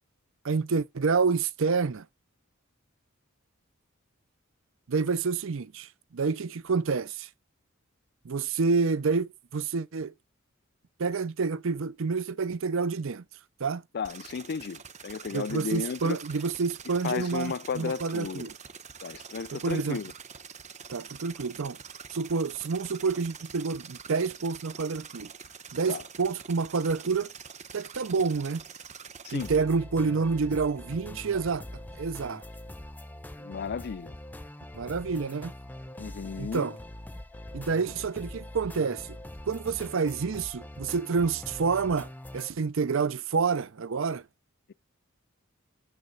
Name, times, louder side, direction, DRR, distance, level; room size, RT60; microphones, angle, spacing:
voice 1, 0.4-2.1 4.9-7.3 8.2-10.1 11.0-13.2 13.6-13.8 15.3-18.5 19.5-20.0 20.9-21.8 22.1-25.3 25.7-27.3 27.7-28.6 29.3-31.6 32.0-32.4 34.7-35.5 36.4-36.8 37.5-39.1 39.5-44.2, right 4 dB, 65° right, 0.6 m, -28 dB
voice 2, 13.9-16.2 17.0-18.5 19.0-20.1 25.9-26.0 29.2-29.5 33.4-34.1 36.0-36.7, left 5 dB, 50° left, 0.4 m, -34 dB
sound 1, 14.0-29.6, right 6 dB, 35° right, 0.9 m, -46 dB
sound 2, 29.4-42.5, left 1 dB, 10° left, 0.7 m, -43 dB
9.7 x 7.0 x 3.9 m
head